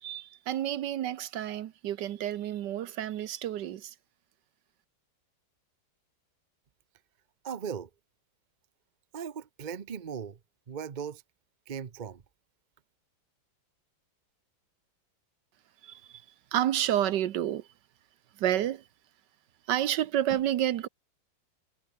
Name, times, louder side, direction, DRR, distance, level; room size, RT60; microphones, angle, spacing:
voice 1, 0.0-3.9 15.8-16.2 16.5-17.7 18.4-18.8 19.7-20.9, right 11 dB, 65° right, 1.3 m, -30 dB
voice 2, 7.4-7.9 9.1-10.4 10.7-11.2 11.7-12.2, right 7 dB, 45° right, 0.5 m, -38 dB
omnidirectional pair, 2.1 m